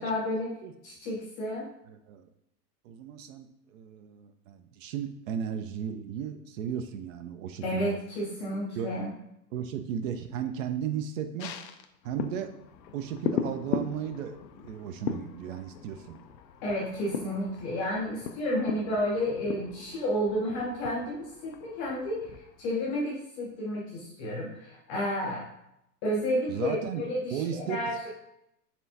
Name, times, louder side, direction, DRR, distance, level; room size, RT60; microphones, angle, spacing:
voice 1, 0.0-0.5 0.8-1.7 7.6-9.1 16.6-22.3 22.6-25.5 26.0-27.4 27.7-28.1, equal, 20° left, -4 dB, 0.4 m, -31 dB
voice 2, 1.9-2.2 2.8-8.0 8.8-9.0 9.5-11.5 12.0-12.5 12.9-16.2 26.5-27.0 27.3-27.8, right 8 dB, 55° right, 8 dB, 0.5 m, -35 dB
sound 1, 11.4-23.1 23.4-23.5, left 8 dB, 85° left, 0.6 m, -38 dB
4.3 x 3.4 x 2.6 m, 0.80 s
hypercardioid pair, 130°, 49 cm